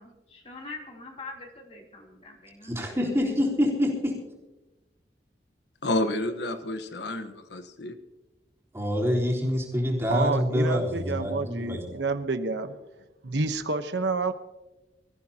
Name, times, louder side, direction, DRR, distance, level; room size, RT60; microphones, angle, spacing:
voice 1, 0.0-3.6, left 3 dB, 35° left, 3.2 m, -44 dB
voice 2, 2.6-4.2 8.7-11.8, equal, 15° right, 3.8 m, -26 dB
voice 3, 5.8-7.9, left 1 dB, 75° left, 1.2 m, -30 dB
voice 4, 10.1-12.8 13.2-14.3, right 3 dB, 80° right, 1.0 m, -29 dB
24.5 x 15.0 x 2.9 m
head